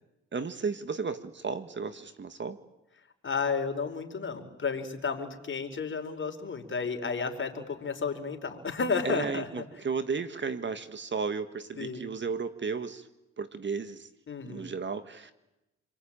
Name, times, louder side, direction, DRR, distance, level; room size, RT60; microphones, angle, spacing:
voice 1, 0.3-2.6 9.1-13.1 13.4-14.1 14.5-15.3, right 5 dB, 40° right, 11 dB, 1.7 m, -34 dB
voice 2, 3.2-9.6 11.8-12.1 14.3-14.7, left 5 dB, 40° left, 6 dB, 4.7 m, -32 dB
29.5 x 23.0 x 8.9 m, 0.92 s
cardioid pair, 75°, 29 cm